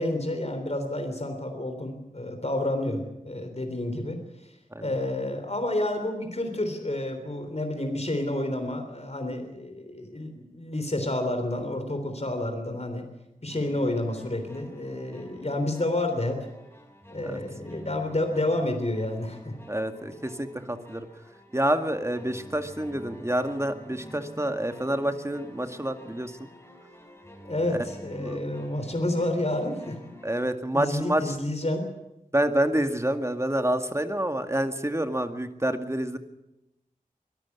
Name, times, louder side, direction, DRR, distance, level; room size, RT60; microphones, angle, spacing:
voice 1, 0.0-4.2 4.8-13.0 13.4-16.4 17.1-19.5 27.4-30.0 30.7-31.9, left 1 dB, 50° left, 6 dB, 3.5 m, -29 dB
sound 1, 13.5-30.4, equal, 15° left, 4.4 m, -48 dB
voice 2, 19.7-21.1 21.5-26.3 28.2-28.4 30.2-31.3 32.3-36.2, right 1 dB, 20° right, 7 dB, 2.1 m, -28 dB
23.5 x 13.0 x 9.7 m, 0.89 s
wide cardioid pair, 45°, 15 cm